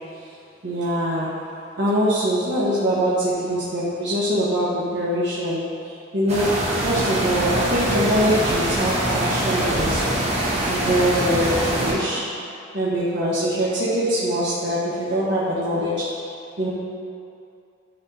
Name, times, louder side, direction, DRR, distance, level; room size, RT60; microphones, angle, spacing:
voice 1, 0.6-1.3 1.8-6.5 6.8-10.0 10.7-12.2 12.7-16.1 16.6-16.7, equal, 55° right, -10 dB, 1.5 m, -23 dB
sound 1, 6.3-11.9, right 1 dB, 35° right, 1.2 m, -23 dB
10.5 x 3.7 x 3.9 m, 2.5 s
head